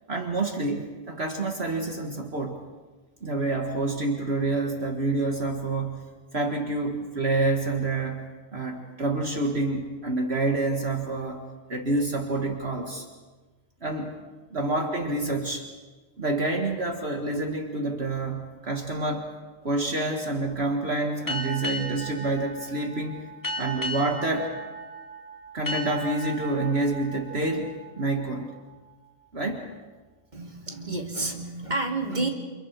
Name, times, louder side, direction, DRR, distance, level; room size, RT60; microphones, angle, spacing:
voice 1, 0.1-2.6 3.2-8.2 8.5-11.4 11.7-13.1 13.8-14.1 14.5-15.7 16.2-19.3 19.6-23.2 23.6-24.5 25.5-28.5 29.3-29.7, right 2 dB, 50° right, 2 dB, 2.0 m, -28 dB
sound 1, 21.3-28.6, right 1 dB, 15° left, 2.0 m, -36 dB
voice 2, 30.3-32.3, right 2 dB, 30° right, 2 dB, 2.7 m, -30 dB
29.0 x 29.0 x 4.7 m, 1.3 s
omnidirectional pair, 1.4 m